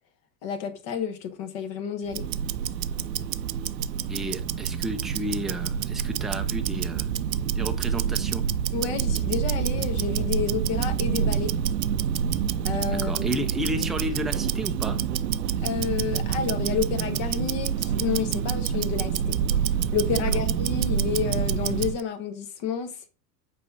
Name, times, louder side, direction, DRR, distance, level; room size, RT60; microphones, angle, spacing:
voice 1, 0.4-2.3 8.7-11.5 12.6-13.3 15.6-19.3 19.9-23.1, left 7 dB, 55° left, 1.3 m, -30 dB
Tick-tock, 2.1-22.0, right 8 dB, 80° right, 0.6 m, -27 dB
voice 2, 4.1-7.1 7.6-8.4 12.9-15.0 20.3-20.4, right 1 dB, ahead, 0.3 m, -32 dB
8.3 x 4.3 x 2.8 m
figure-of-eight pair, 80°, 50 cm